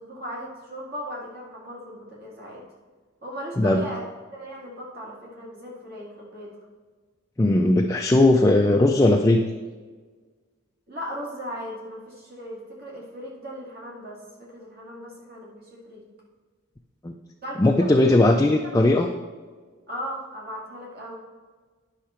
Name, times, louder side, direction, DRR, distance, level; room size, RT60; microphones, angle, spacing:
voice 1, 0.0-2.6 3.2-4.1 4.3-6.5 10.9-16.0 17.4-18.4 19.9-21.2, equal, 50° right, -4 dB, 2.3 m, -37 dB
voice 2, 7.4-9.5 17.0-17.1 17.6-19.1, left 2 dB, 15° left, 3 dB, 0.3 m, -18 dB
10.0 x 5.7 x 4.4 m, 1.4 s
head